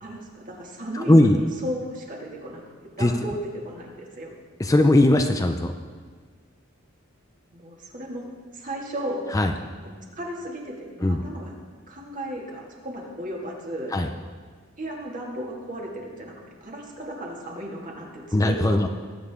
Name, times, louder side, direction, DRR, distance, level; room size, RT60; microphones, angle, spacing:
voice 1, 0.0-2.6 3.0-3.4 3.6-4.3 7.5-8.3 8.5-9.2 9.8-11.5 11.9-13.9 14.8-16.3 16.6-18.8, equal, 40° right, -2 dB, 2.2 m, -35 dB
voice 2, 0.9-1.4 3.0-3.1 4.6-5.7 9.3-9.5 11.0-11.2 13.9-14.1 18.3-18.9, left 1 dB, 15° left, 5 dB, 0.5 m, -19 dB
19.5 x 8.7 x 3.7 m, 1.5 s
head